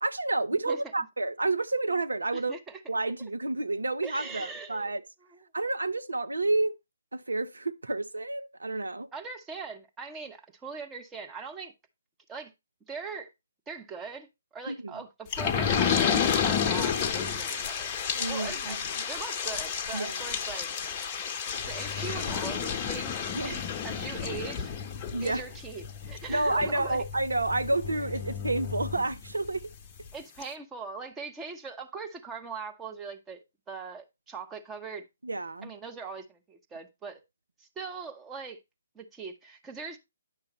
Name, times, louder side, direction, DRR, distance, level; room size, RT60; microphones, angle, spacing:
voice 1, 0.0-2.5 2.9-5.0 5.5-6.7 7.1-9.1 14.7-14.9 18.1-18.8 19.9-20.2 23.3-23.6 25.1-25.4 26.3-29.6 35.2-35.7, right 2 dB, 75° right, 0.7 m, -30 dB
voice 2, 2.3-2.8 4.0-4.9 5.3-5.4 9.1-11.7 12.3-12.5 12.9-13.3 13.7-18.8 19.1-20.7 21.6-24.7 25.2-27.0 30.1-35.1 35.6-37.2 37.6-38.6 38.9-40.0, right 5 dB, 10° right, 1.0 m, -41 dB
sound 1, 15.3-29.6 30.1-30.2 30.4-30.5, left 7 dB, 25° left, 0.8 m, -31 dB
9.8 x 6.2 x 3.1 m
figure-of-eight pair, 135°, 0 cm